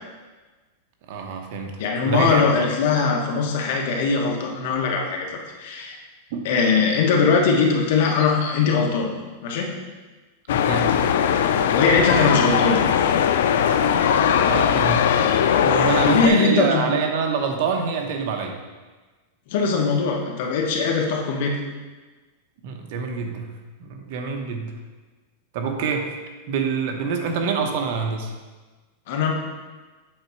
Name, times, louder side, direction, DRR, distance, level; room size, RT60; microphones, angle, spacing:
voice 1, 1.1-2.4 6.3-6.5 10.5-11.0 14.5-15.1 15.6-18.6 22.6-24.7 25.5-26.1 26.5-28.3, right 5 dB, 55° right, 4 dB, 1.0 m, -26 dB
voice 2, 1.8-6.0 6.4-9.1 9.4-9.7 11.7-12.8 15.9-16.9 19.5-21.6 29.1-29.3, left 5 dB, 60° left, 1 dB, 1.3 m, -21 dB
sound 1, 10.5-16.3, left 8 dB, 75° left, 0.4 m, -19 dB
7.9 x 3.9 x 4.6 m, 1.3 s
supercardioid pair, 150°, 0 cm